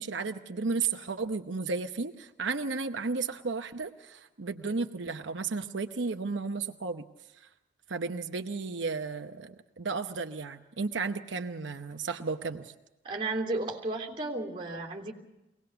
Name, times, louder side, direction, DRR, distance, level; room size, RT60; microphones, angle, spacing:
voice 1, 0.0-7.0 7.9-12.7, right 4 dB, 90° right, 6 dB, 0.9 m, -33 dB
voice 2, 13.0-15.1, right 2 dB, 30° right, -1 dB, 3.2 m, -33 dB
23.0 x 18.5 x 6.9 m, 0.97 s
head